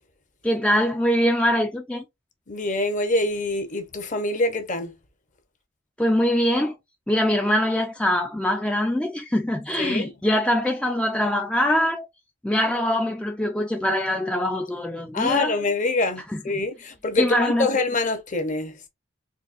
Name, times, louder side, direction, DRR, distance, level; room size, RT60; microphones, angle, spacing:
voice 1, 0.4-2.0 6.0-6.8 7.1-12.1 12.4-15.5 16.3-16.4 17.2-17.7, left 1 dB, 5° left, 0.4 m, -23 dB
voice 2, 2.5-4.9 9.8-10.1 15.1-18.7, left 2 dB, 40° left, 0.8 m, -25 dB
4.0 x 2.7 x 2.4 m
head